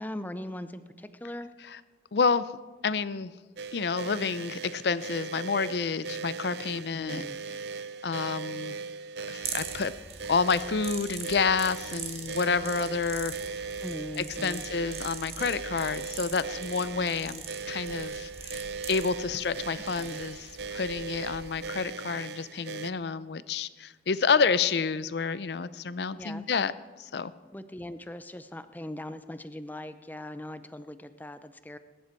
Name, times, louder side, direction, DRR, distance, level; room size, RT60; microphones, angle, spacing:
voice 1, 0.0-1.5 6.8-7.4 13.8-14.6 20.0-20.2 26.2-26.4 27.5-31.8, left 1 dB, 10° left, 11 dB, 0.6 m, -40 dB
voice 2, 2.1-2.5 2.8-3.3 3.7-7.2 7.5-7.6 8.0-8.8 9.3-10.0 10.3-13.8 14.2-18.6 18.9-26.7 27.0-27.3, left 5 dB, 65° left, 16 dB, 0.5 m, -29 dB
sound 1, 3.6-22.9, right 5 dB, 65° right, 0.5 m, -39 dB
sound 2, 9.4-21.7, right 6 dB, 35° right, 1.3 m, -42 dB
20.5 x 10.5 x 4.5 m, 1.3 s
head